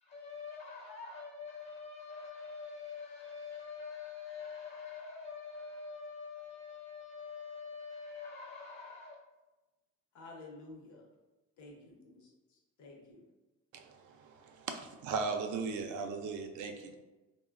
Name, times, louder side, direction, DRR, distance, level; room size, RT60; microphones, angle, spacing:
voice 1, 0.0-9.1, left 5 dB, 40° left, -2 dB, 0.5 m, -45 dB
voice 2, 10.1-11.0 11.6-13.3, left 2 dB, 70° left, -1 dB, 0.7 m, -52 dB
voice 3, 13.7-16.9, right 4 dB, 75° right, 5 dB, 0.4 m, -38 dB
3.0 x 2.1 x 2.4 m, 1.1 s
cardioid pair, 90°, 30 cm